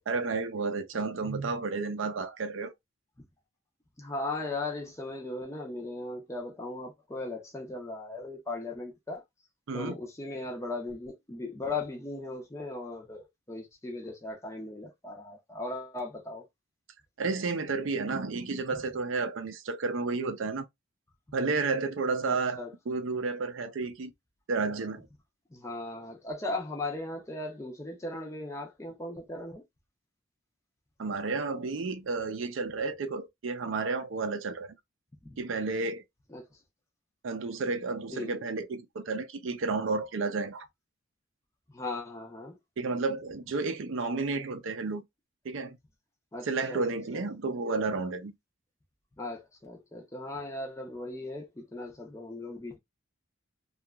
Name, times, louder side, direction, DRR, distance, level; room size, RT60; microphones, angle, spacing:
voice 1, 0.1-2.7 9.7-9.9 17.2-20.6 21.3-24.1 24.5-25.0 31.0-34.8 35.4-36.0 37.2-40.7 42.8-45.0 45.4-45.8 46.4-48.3, right 4 dB, 65° right, 0.5 m, -31 dB
voice 2, 4.0-9.2 9.7-16.4 22.2-22.7 25.5-29.6 35.3-35.4 36.3-36.5 38.1-38.5 41.7-42.6 46.3-46.8 47.1-47.3 49.2-52.8, left 2 dB, 15° left, 0.5 m, -38 dB
2.8 x 2.3 x 2.2 m
head